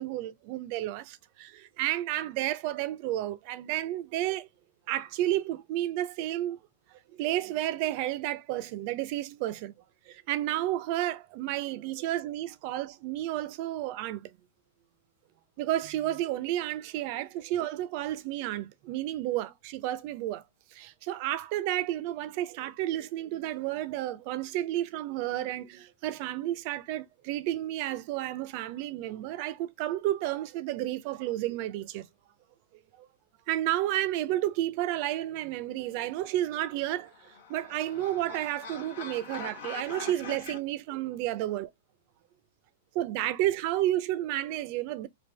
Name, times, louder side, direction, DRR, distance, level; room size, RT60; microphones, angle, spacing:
voice 1, 0.0-4.5 4.9-6.6 7.2-9.7 10.1-14.4 15.6-20.4 20.7-32.1 33.0-33.1 33.5-41.7 42.9-45.1, right 14 dB, 50° right, 0.5 m, -31 dB
sound 1, 36.7-40.6, left 5 dB, 70° left, 1.0 m, -43 dB
3.4 x 2.5 x 3.2 m
hypercardioid pair, 130°, 0 cm